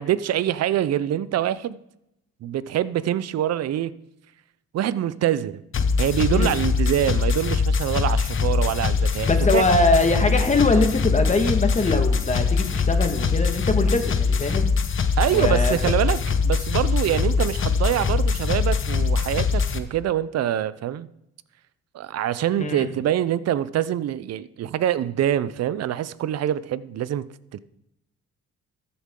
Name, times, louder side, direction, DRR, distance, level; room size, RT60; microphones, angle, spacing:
voice 1, 0.0-1.8 2.4-3.9 4.7-5.6 6.0-9.6 15.2-21.1 21.9-27.3 27.5-27.6, right 11 dB, 55° right, 0.5 m, -25 dB
sound 1, 5.7-19.8, left 5 dB, 40° left, 0.9 m, -22 dB
voice 2, 9.2-14.7 15.3-15.8 22.6-22.9, left 2 dB, 25° left, 1.6 m, -22 dB
14.0 x 7.0 x 3.7 m
cardioid pair, 90°, 30 cm